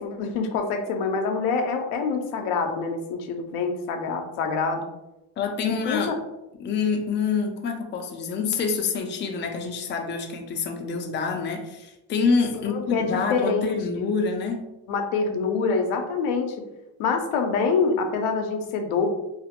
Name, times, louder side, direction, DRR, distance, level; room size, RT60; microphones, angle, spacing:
voice 1, 0.0-4.8 5.6-6.1 12.7-14.1 14.9-16.6 17.0-19.1, left 4 dB, 85° left, 4 dB, 0.6 m, -26 dB
voice 2, 5.4-6.1 6.6-14.6, left 5 dB, 25° left, 3 dB, 0.3 m, -27 dB
2.5 x 2.0 x 2.8 m, 0.93 s
cardioid pair, 85°, 50 cm